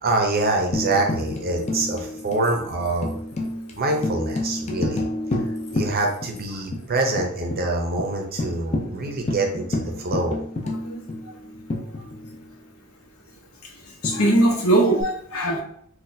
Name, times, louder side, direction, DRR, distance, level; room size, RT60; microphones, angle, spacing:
voice 1, 0.0-3.1 3.8-5.0 5.7-10.4, right 2 dB, 45° right, 2 dB, 0.6 m, -25 dB
Tambourine, 0.7-6.4 6.7-6.8 7.2-7.6 8.0-8.1 8.4-12.5 14.0-15.0, left 1 dB, 30° left, 0.4 m, -30 dB
voice 2, 14.0-15.6, right 1 dB, 80° left, -1 dB, 0.9 m, -20 dB
4.0 x 2.3 x 2.6 m, 0.64 s
head